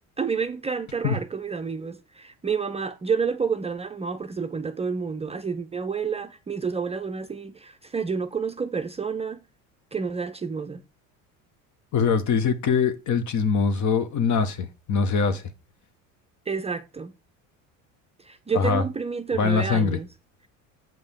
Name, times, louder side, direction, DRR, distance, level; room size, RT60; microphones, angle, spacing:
voice 1, 0.2-9.4 9.9-10.8 16.5-17.1 18.2-20.1, right 5 dB, 15° right, 0.5 m, -29 dB
voice 2, 11.9-15.4 18.5-18.8 19.4-20.0, left 5 dB, 50° left, 1.2 m, -23 dB
7.6 x 5.4 x 3.5 m
supercardioid pair, 80°, 38 cm